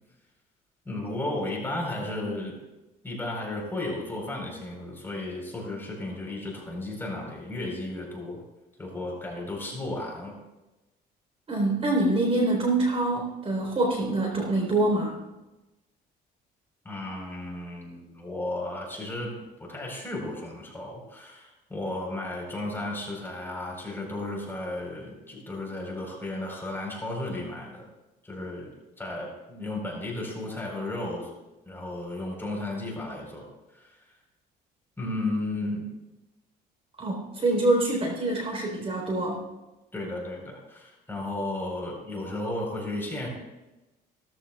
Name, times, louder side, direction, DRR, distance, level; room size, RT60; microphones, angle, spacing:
voice 1, 0.8-2.6 3.0-8.4 8.8-10.3 16.8-27.9 28.2-28.7 29.0-31.3 31.6-33.5 33.7-34.0 35.0-35.9 39.9-43.3, left 2 dB, 15° left, -2 dB, 4.3 m, -34 dB
voice 2, 11.5-15.2 37.0-39.4, right 2 dB, 35° right, 0 dB, 3.9 m, -25 dB
17.0 x 14.5 x 2.4 m, 1.1 s
cardioid pair, 110°, 17 cm